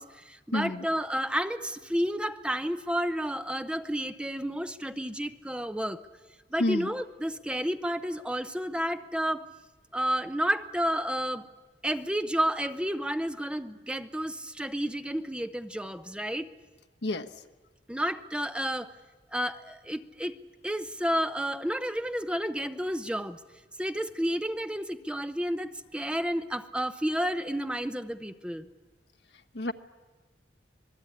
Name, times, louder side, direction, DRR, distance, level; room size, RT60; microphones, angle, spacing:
voice 1, 0.0-6.0 6.5-9.5 9.9-11.5 11.8-16.5 17.9-18.9 19.3-20.3 20.6-23.4 23.8-28.7, equal, 5° right, 10 dB, 0.7 m, -31 dB
voice 2, 0.5-0.8 6.6-6.9 17.0-17.3 29.5-29.7, left 1 dB, 65° left, 7 dB, 1.2 m, -28 dB
26.5 x 19.5 x 9.9 m, 1.3 s
head